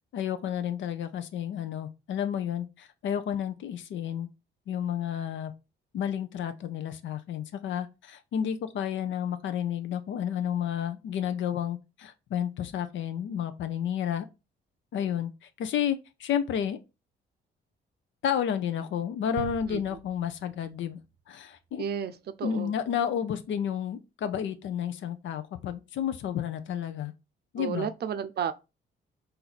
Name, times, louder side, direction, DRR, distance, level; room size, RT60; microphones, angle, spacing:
voice 1, 0.1-4.3 4.7-5.5 5.9-14.3 14.9-15.3 15.6-16.8 18.2-21.0 21.3-21.8 22.4-27.1 27.5-27.9, left 9 dB, 70° left, 0.7 m, -31 dB
sound 1, 19.4-21.3 21.7-21.8, right 7 dB, 90° right, 0.7 m, -44 dB
voice 2, 21.8-22.1 22.4-22.7 27.6-28.5, right 8 dB, 55° right, 0.5 m, -32 dB
4.4 x 2.7 x 4.1 m
cardioid pair, 90°, 20 cm